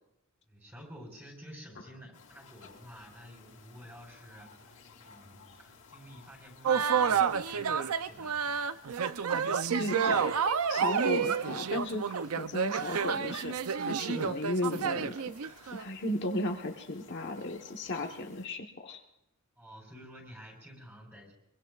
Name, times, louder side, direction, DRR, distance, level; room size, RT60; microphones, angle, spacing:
voice 1, 0.5-8.7 19.6-21.3, equal, 10° right, 0 dB, 4.2 m, -51 dB
sound 1, 2.1-18.5, left 5 dB, 70° left, 2.9 m, -57 dB
sound 2, 6.6-15.8, right 6 dB, 75° right, 0.6 m, -29 dB
voice 2, 9.7-10.3 10.7-13.5 13.9-15.2 15.7-19.0, left 1 dB, 55° left, 2 dB, 1.2 m, -35 dB
24.0 x 23.0 x 2.4 m, 0.84 s
head